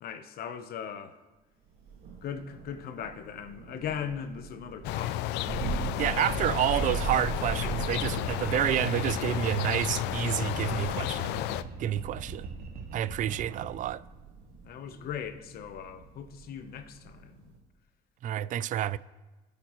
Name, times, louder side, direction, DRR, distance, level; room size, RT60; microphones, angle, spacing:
voice 1, 0.0-1.2 2.2-6.0 6.5-6.6 14.6-17.4, left 8 dB, 65° left, 1.0 m, -39 dB
Thunder, 1.8-17.6, right 5 dB, 85° right, 2.0 m, -40 dB
sound 1, 4.8-11.6, left 14 dB, 85° left, 0.4 m, -32 dB
voice 2, 6.0-11.3 11.8-12.5 12.9-14.0 18.2-19.0, right 12 dB, 50° right, 0.4 m, -29 dB
sound 2, 8.0-13.7, right 4 dB, 65° right, 1.3 m, -41 dB
20.5 x 8.7 x 3.1 m
cardioid pair, 110°, 17 cm